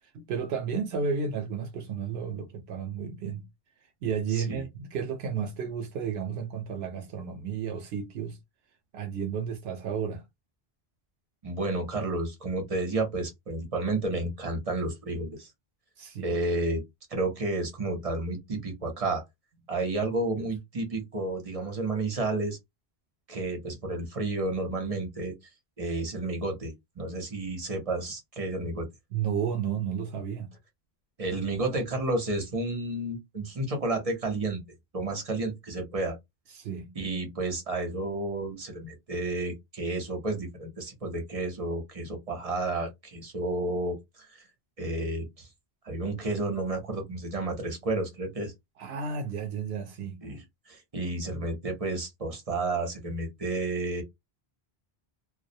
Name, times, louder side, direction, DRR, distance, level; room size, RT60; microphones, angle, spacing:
voice 1, 0.1-3.5 4.0-8.4 8.9-10.2 16.0-16.4 20.4-20.5 29.1-30.5 36.5-36.9 48.8-50.2, right 6 dB, 75° right, 0.8 m, -32 dB
voice 2, 4.3-4.6 11.4-15.5 16.2-16.8 17.1-19.2 19.7-22.6 23.3-25.3 25.8-28.9 31.2-34.6 34.9-36.2 37.0-44.5 44.8-45.5 45.8-48.5 50.2-54.0, right 2 dB, 40° right, 0.7 m, -31 dB
2.3 x 2.0 x 2.6 m
omnidirectional pair, 1.1 m